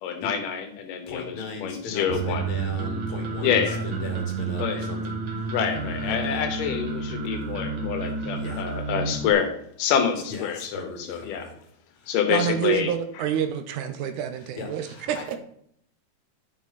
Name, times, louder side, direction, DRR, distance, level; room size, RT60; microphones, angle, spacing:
voice 1, 0.0-1.4 1.6-2.5 3.4-3.8 4.6-4.8 5.5-11.5 12.1-12.9, left 8 dB, 85° left, 6 dB, 2.6 m, -27 dB
voice 2, 1.1-5.2 6.1-6.4 8.3-8.6 10.1-11.6 12.0-12.8 14.4-15.4, left 4 dB, 60° left, 1 dB, 2.7 m, -37 dB
sound 1, 2.1-9.3, right 4 dB, 45° right, 1.7 m, -30 dB
voice 3, 12.3-15.4, right 9 dB, 80° right, 9 dB, 2.0 m, -28 dB
10.5 x 5.0 x 4.0 m, 0.67 s
omnidirectional pair, 3.7 m